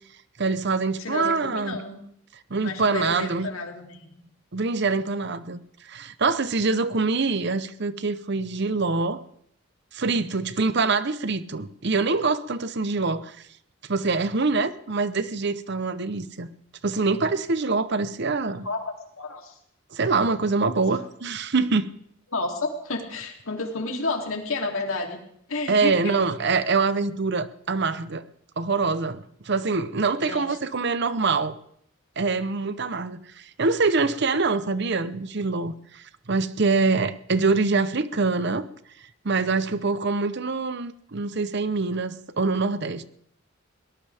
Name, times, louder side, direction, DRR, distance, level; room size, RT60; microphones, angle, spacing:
voice 1, 0.4-1.8 2.5-3.5 4.5-9.2 9.9-13.4 13.9-16.5 16.8-18.7 19.9-21.9 25.7-28.2 28.6-31.6 32.2-38.7 39.2-43.0, right 4 dB, 55° right, 0.8 m, -25 dB
voice 2, 1.0-2.0 2.6-4.2 18.6-18.8 19.2-19.5 22.3-25.2 25.5-26.1 30.2-30.5, left 3 dB, 80° left, 3.0 m, -31 dB
22.5 x 18.5 x 3.5 m
head